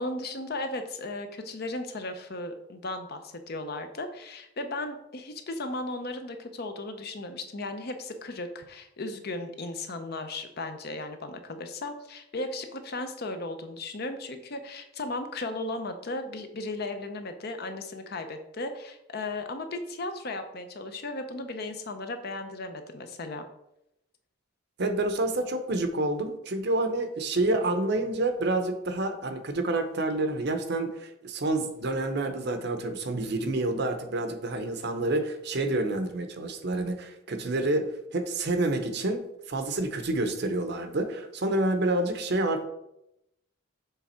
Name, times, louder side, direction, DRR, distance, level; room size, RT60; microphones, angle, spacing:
voice 1, 0.0-23.5, left 2 dB, 50° left, 7 dB, 0.6 m, -36 dB
voice 2, 24.8-42.6, right 2 dB, 55° right, 8 dB, 0.7 m, -28 dB
6.8 x 3.5 x 4.3 m, 0.84 s
head